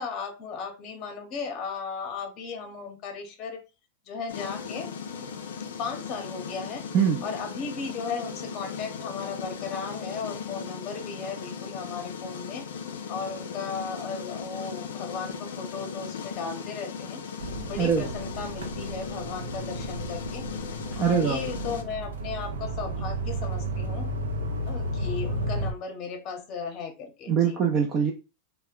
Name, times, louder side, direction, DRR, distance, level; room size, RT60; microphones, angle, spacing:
voice 1, 0.0-3.6 4.1-4.9 5.8-6.8 7.2-12.7 13.1-17.2 17.7-20.5 21.0-24.1 24.7-27.6, left 5 dB, 45° left, 5 dB, 0.7 m, -36 dB
sound 1, 4.3-21.8, left 6 dB, 85° left, 0.4 m, -37 dB
sound 2, 17.4-25.7, right 1 dB, 85° right, 0.5 m, -33 dB
voice 2, 17.8-18.1 20.9-21.5 27.3-28.1, right 7 dB, 35° right, 0 dB, 0.5 m, -23 dB
2.1 x 2.1 x 3.5 m, 0.31 s
hypercardioid pair, 110°, 0 cm